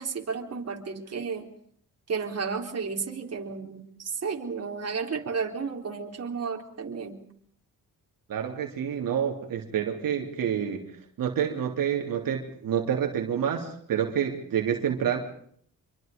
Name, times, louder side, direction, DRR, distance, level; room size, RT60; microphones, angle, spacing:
voice 1, 0.0-1.5 2.1-7.2, right 5 dB, 45° right, 2 dB, 4.1 m, -32 dB
voice 2, 8.3-10.8 11.2-15.2, right 8 dB, 75° right, 2 dB, 3.3 m, -28 dB
26.5 x 24.0 x 5.3 m, 0.62 s
cardioid pair, 85°, 33 cm